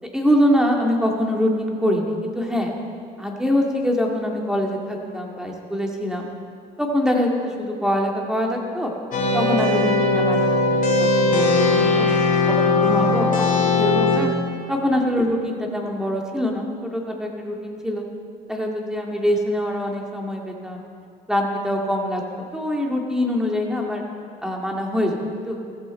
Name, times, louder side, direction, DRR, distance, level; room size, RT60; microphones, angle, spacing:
voice 1, 0.1-2.7 3.2-6.3 6.8-8.9 9.3-12.1 12.6-14.3 14.7-18.0 18.5-20.8 21.3-24.0 24.4-25.2 25.5-25.6, equal, 5° right, 0 dB, 2.1 m, -24 dB
sound 1, 9.1-14.2, left 3 dB, 50° left, 2.7 m, -19 dB
15.0 x 15.0 x 4.4 m, 2.4 s
cardioid pair, 110°, 17 cm